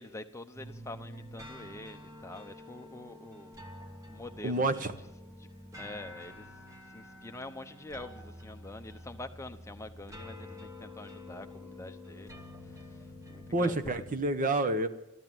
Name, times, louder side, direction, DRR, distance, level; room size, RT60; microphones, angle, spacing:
voice 1, 0.0-3.6 4.0-4.9 5.4-5.5 5.8-12.3 12.6-14.0, left 2 dB, 15° left, 7 dB, 0.8 m, -46 dB
sound 1, 0.5-14.2, left 1 dB, 15° right, 1.4 m, -48 dB
voice 2, 4.4-4.9 13.5-14.9, right 2 dB, 40° right, 10 dB, 1.0 m, -28 dB
14.0 x 13.0 x 7.6 m, 0.93 s
head